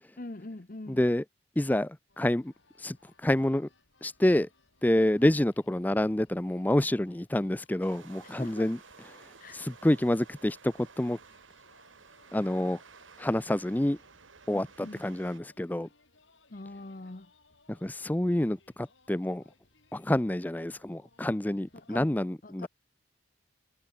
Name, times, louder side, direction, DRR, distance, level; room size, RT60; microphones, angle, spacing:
voice 1, 0.2-1.1 5.2-5.4 8.2-8.7 9.4-9.6 14.5-15.0 16.5-17.3 21.7-22.7, left 2 dB, 45° left, 0.9 m, -44 dB
voice 2, 0.9-1.2 1.6-2.5 2.8-3.0 3.2-3.7 4.0-4.5 4.8-8.8 9.5-11.2 12.3-12.8 13.2-14.0 14.5-15.9 17.7-19.4 19.9-22.7, left 1 dB, 10° left, 0.4 m, -27 dB
sound 1, 2.1-22.0, left 3 dB, 80° left, 6.6 m, -66 dB
sound 2, 7.8-15.4, right 5 dB, 90° right, 2.1 m, -54 dB
head